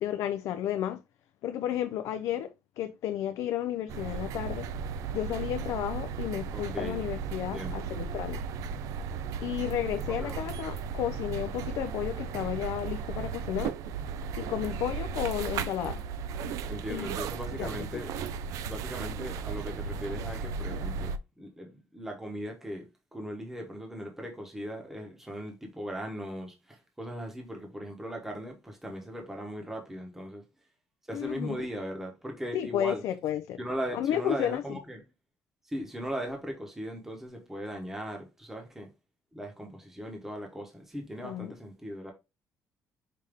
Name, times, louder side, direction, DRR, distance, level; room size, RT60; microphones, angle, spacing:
voice 1, 0.0-1.0 1.4-2.5 2.8-4.7 5.1-8.4 9.4-13.7 14.4-16.0 16.9-17.1 17.6-18.0 31.1-31.7 32.5-33.6 33.9-34.8 41.2-41.5, left 11 dB, 70° left, 0.4 m, -32 dB
sound 1, 3.9-21.2, right 6 dB, 75° right, 0.4 m, -35 dB
voice 2, 6.5-7.8 10.2-10.4 16.7-30.4 31.1-33.0 33.6-35.0 35.7-38.9 39.3-42.1, equal, 5° right, 1.0 m, -38 dB
5.1 x 2.7 x 3.4 m
cardioid pair, 160°, 6 cm